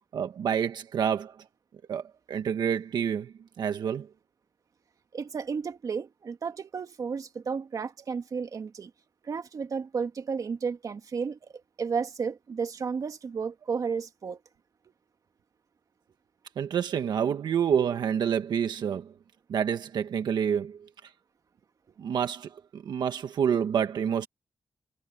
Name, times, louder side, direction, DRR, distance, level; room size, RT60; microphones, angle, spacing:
voice 1, 0.1-1.3 1.9-2.0 2.3-4.1 16.6-19.1 19.5-21.1 22.0-24.3, right 8 dB, 85° right, 1.3 m, -28 dB
voice 2, 5.1-8.9 9.2-11.4 11.8-14.4, right 5 dB, 55° right, 2.0 m, -32 dB
wide cardioid pair, 120°, 7 cm